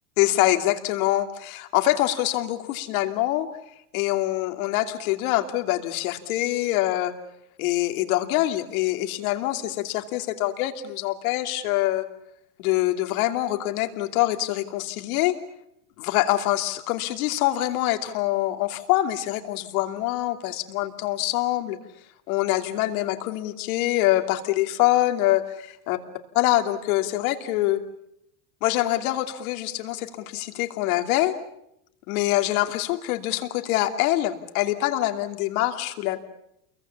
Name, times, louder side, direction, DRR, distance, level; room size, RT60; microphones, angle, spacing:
voice 1, 0.2-3.5 3.9-7.1 7.6-12.0 12.6-15.4 16.0-21.8 22.3-26.0 26.3-27.8 28.6-31.3 32.1-36.2, left 15 dB, 65° left, 6 dB, 2.9 m, -24 dB
29.0 x 23.0 x 7.3 m, 0.79 s
supercardioid pair, 130°, 46 cm